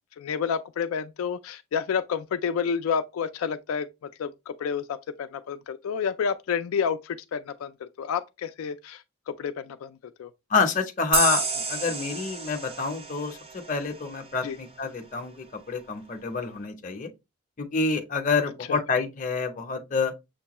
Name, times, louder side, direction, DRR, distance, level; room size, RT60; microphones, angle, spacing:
voice 1, 0.2-3.9 4.2-10.3 14.4-14.6 18.7-18.8, left 6 dB, 80° left, 0.3 m, -30 dB
voice 2, 10.5-13.4 13.7-17.1 17.6-20.1, left 4 dB, 35° left, 0.6 m, -27 dB
sound 1, 11.1-14.5, right 3 dB, 25° right, 0.5 m, -30 dB
6.5 x 2.2 x 2.9 m
head